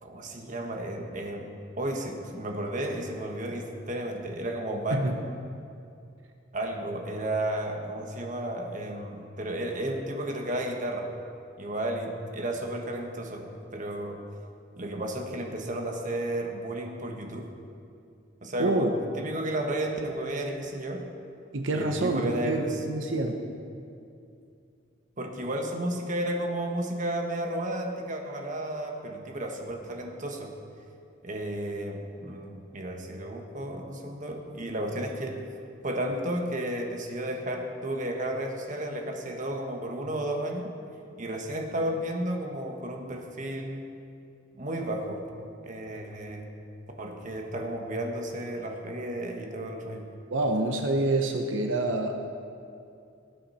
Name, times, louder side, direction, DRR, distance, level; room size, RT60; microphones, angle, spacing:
voice 1, 0.0-5.1 6.5-11.1 11.6-14.2 14.8-17.5 18.4-21.1 21.7-22.8 25.2-30.6 31.2-35.4 35.8-40.7 41.2-43.9 44.5-45.2 45.6-46.5 47.0-50.1, right 1 dB, 40° right, 2 dB, 1.3 m, -33 dB
voice 2, 18.6-18.9 21.5-23.4 50.3-52.3, right 2 dB, 80° right, 3 dB, 0.9 m, -27 dB
18.5 x 9.1 x 4.3 m, 2.5 s
head